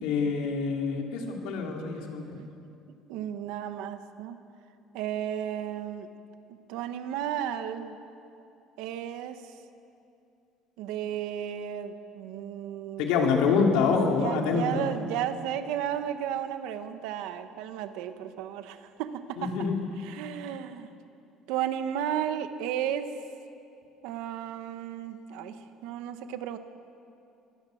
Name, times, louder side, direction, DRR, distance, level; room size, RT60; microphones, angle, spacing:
voice 1, 0.0-2.4 13.0-14.9 19.4-19.7, left 5 dB, 75° left, 1 dB, 3.0 m, -26 dB
voice 2, 3.1-4.4 4.9-6.1 6.5-8.0 8.8-9.5 10.8-13.1 14.1-19.5 20.0-20.9 21.5-23.1 24.0-26.6, right 10 dB, 75° right, 9 dB, 1.3 m, -34 dB
23.5 x 18.0 x 6.5 m, 2.7 s
cardioid pair, 180°, 0 cm